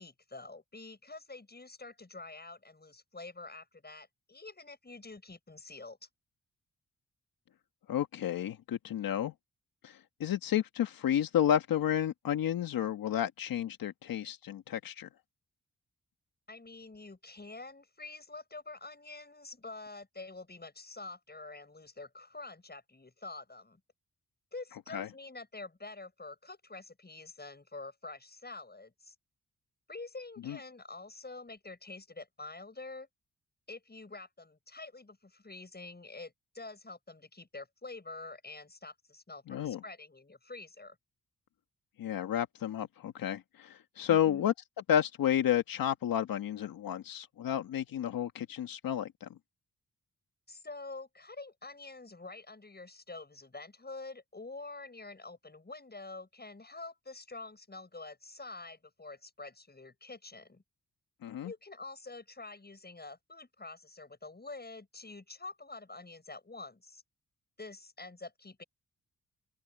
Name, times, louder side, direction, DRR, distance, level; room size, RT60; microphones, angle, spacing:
voice 1, 0.0-6.1 16.5-23.8 24.5-29.1 29.9-33.1 33.7-41.0 44.1-44.5 50.5-60.6 61.4-67.0 67.6-68.6, left 3 dB, 30° left, 7.3 m, -47 dB
voice 2, 7.9-9.3 9.8-15.1 24.9-25.1 30.5-30.6 39.5-39.8 42.0-44.5 44.9-49.3 61.2-61.5, left 10 dB, 80° left, 1.6 m, -31 dB
open air
supercardioid pair, 50°, 34 cm